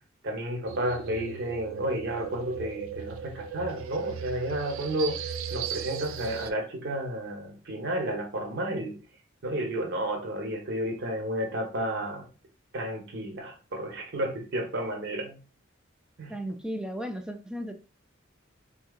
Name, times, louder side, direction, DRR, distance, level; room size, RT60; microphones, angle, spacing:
voice 1, 0.2-9.0 9.4-12.3 12.7-15.4 16.2-16.3, right 1 dB, 60° right, 3 dB, 0.8 m, -32 dB
sound 1, 0.6-6.5, right 8 dB, 80° right, 0.3 m, -37 dB
voice 2, 16.3-17.7, equal, 5° right, 6 dB, 0.4 m, -35 dB
3.7 x 2.7 x 2.3 m, 0.34 s
head